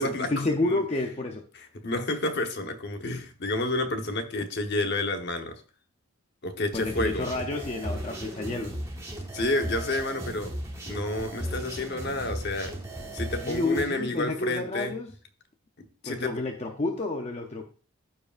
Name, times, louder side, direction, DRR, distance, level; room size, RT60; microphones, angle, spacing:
voice 1, 0.0-1.5 6.7-8.8 13.4-15.1 16.0-17.6, left 2 dB, 30° left, 3 dB, 0.6 m, -30 dB
voice 2, 1.8-5.5 6.4-7.3 9.3-10.5 10.8-12.7 13.1-14.9 16.0-16.3, left 2 dB, 50° left, 5 dB, 1.0 m, -30 dB
sound 1, 6.7-13.8, equal, 15° right, 1.4 m, -36 dB
14.0 x 4.8 x 2.5 m, 0.38 s
head